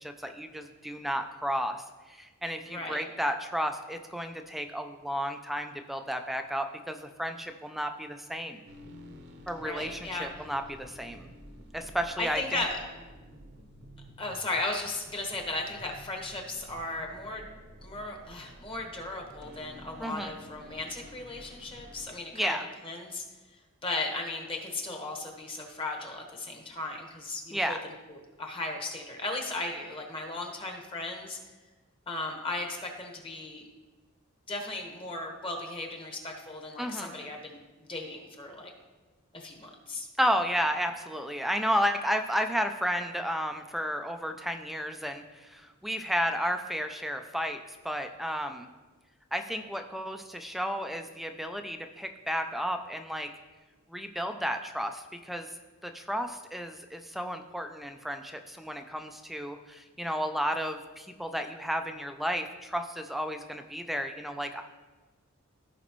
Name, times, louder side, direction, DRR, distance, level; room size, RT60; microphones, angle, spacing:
voice 1, 0.0-8.6 9.5-11.3 11.7-12.6 20.0-20.3 22.3-22.6 27.5-27.8 36.8-37.1 40.2-48.7 49.3-53.3 53.9-55.5 55.8-64.6, equal, ahead, 6 dB, 0.4 m, -32 dB
voice 2, 2.7-3.0 9.6-10.3 12.2-12.8 14.2-17.5 17.8-22.6 22.8-23.2 23.8-27.8 28.1-31.4 32.1-33.6 34.5-37.6 37.9-38.7 39.3-40.1, left 2 dB, 25° left, 1 dB, 1.2 m, -36 dB
sound 1, 8.6-22.2, equal, 55° right, 0.8 m, -50 dB
15.0 x 5.1 x 3.0 m, 1.2 s
head